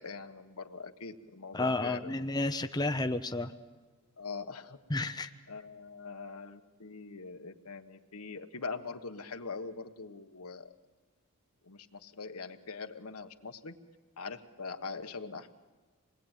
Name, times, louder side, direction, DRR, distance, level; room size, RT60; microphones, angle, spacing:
voice 1, 0.0-2.2 4.2-4.8 5.5-10.7 11.6-13.8 14.2-15.5, left 4 dB, 75° left, 7 dB, 1.4 m, -42 dB
voice 2, 1.5-3.5 4.9-5.3, left 2 dB, 20° left, 6 dB, 0.7 m, -31 dB
26.5 x 20.0 x 9.1 m, 1.4 s
head